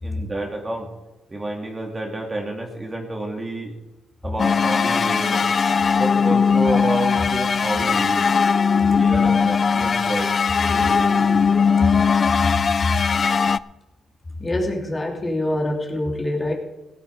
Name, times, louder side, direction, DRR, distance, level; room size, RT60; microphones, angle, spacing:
voice 1, 0.0-0.9 1.3-3.7 4.2-5.5 5.9-8.3 8.7-10.3 10.7-11.5, right 2 dB, 25° right, 1 dB, 3.0 m, -29 dB
sound 1, 4.4-13.6, left 6 dB, 40° left, 0.4 m, -19 dB
voice 2, 14.4-16.5, left 1 dB, 25° left, -1 dB, 2.9 m, -25 dB
16.5 x 10.5 x 5.0 m, 1.0 s
cardioid pair, 90°, 0 cm